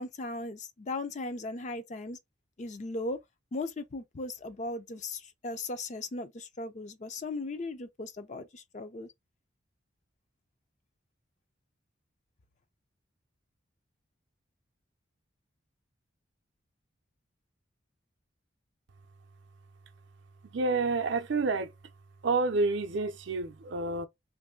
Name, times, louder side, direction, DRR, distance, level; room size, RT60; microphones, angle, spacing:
voice 1, 0.0-2.2 2.6-3.2 3.5-9.1, left 2 dB, 35° left, 0.4 m, -37 dB
voice 2, 20.4-21.7 22.2-24.1, right 3 dB, 65° right, 0.5 m, -29 dB
3.0 x 2.6 x 3.6 m
head